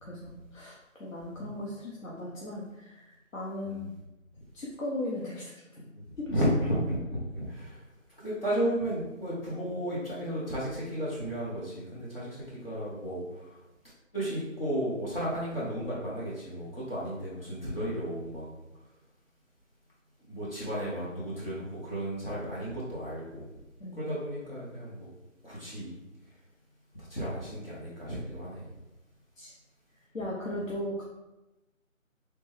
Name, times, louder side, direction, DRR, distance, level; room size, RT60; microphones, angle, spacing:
voice 1, 0.0-3.9 4.5-5.9 6.2-6.4 23.8-24.1 29.4-29.5 30.1-31.0, left 1 dB, 70° left, -5 dB, 0.9 m, -37 dB
voice 2, 5.9-7.8 8.2-13.6 14.1-18.4 20.3-23.5 23.9-25.1 25.4-26.0 26.9-28.6, equal, 45° left, -8 dB, 1.1 m, -33 dB
3.4 x 2.9 x 3.1 m, 1.0 s
figure-of-eight pair, 170°, 40 cm